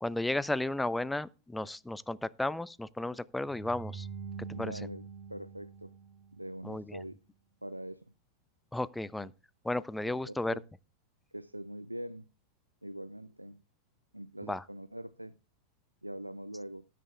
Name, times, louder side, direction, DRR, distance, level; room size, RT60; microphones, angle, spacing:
voice 1, 0.0-4.1 4.6-4.7 6.6-7.0 8.7-9.3 9.6-10.6 14.5-14.6, left 2 dB, 5° left, 0.4 m, -33 dB
sound 1, 3.5-6.7, right 6 dB, 10° right, 3.3 m, -45 dB
voice 2, 4.5-5.0 5.3-6.0 6.3-7.2 7.6-8.1 9.2-9.3 10.0-10.6 11.3-12.3 12.8-13.6 14.1-15.3 16.0-16.9, right 1 dB, 85° right, 0.4 m, -43 dB
18.5 x 8.3 x 2.3 m
figure-of-eight pair, 90°, 0 cm